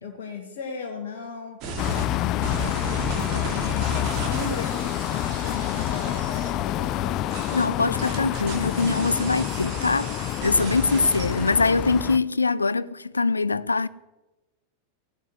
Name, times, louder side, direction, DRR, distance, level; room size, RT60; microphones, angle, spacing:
voice 1, 0.0-1.6 2.1-7.3, left 5 dB, 55° left, 1.8 m, -36 dB
sound 1, 1.6-2.1 2.4-6.5 7.3-11.7, right 4 dB, 40° right, 2.8 m, -36 dB
sound 2, 1.8-12.2, left 13 dB, 35° left, 0.6 m, -28 dB
voice 2, 7.5-13.9, left 4 dB, 80° left, 0.5 m, -23 dB
17.0 x 9.2 x 7.9 m
figure-of-eight pair, 90°, 0 cm